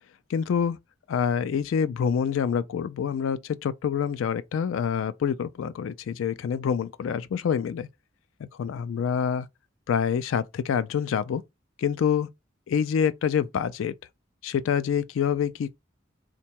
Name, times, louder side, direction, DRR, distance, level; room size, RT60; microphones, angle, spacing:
voice 1, 0.3-0.8 1.1-7.9 8.4-9.5 9.9-11.4 11.8-12.3 12.7-13.9 14.4-15.7, left 7 dB, 85° left, 0.3 m, -26 dB
3.7 x 2.2 x 4.3 m
head